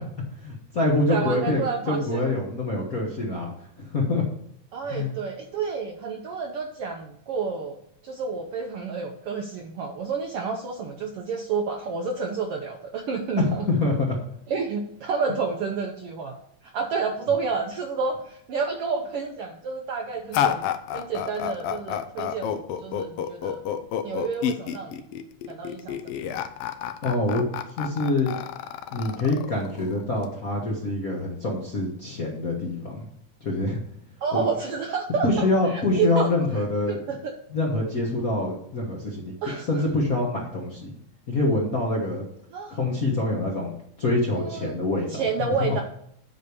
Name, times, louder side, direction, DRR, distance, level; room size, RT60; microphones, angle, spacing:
voice 1, 0.3-3.5 3.8-4.2 4.9-5.1 13.4-14.2 27.0-27.5 27.8-28.3 28.9-33.1 33.4-33.8 34.3-34.5 35.2-37.0 37.5-39.3 39.6-41.0 41.3-42.2 42.7-43.7 44.0-45.7, left 2 dB, 45° left, -2 dB, 1.2 m, -25 dB
voice 2, 1.1-2.2 4.7-13.7 14.5-16.4 16.7-20.6 20.9-23.6 24.0-24.9 25.5-26.0 26.3-26.4 34.2-36.3 36.9-37.3 39.4-39.9 42.5-42.8 44.3-44.8 45.1-45.8, right 5 dB, 70° right, 3 dB, 1.4 m, -30 dB
sound 1, 20.3-30.3, left 9 dB, 80° left, 1.3 m, -29 dB
8.2 x 5.1 x 6.9 m, 0.70 s
omnidirectional pair, 3.4 m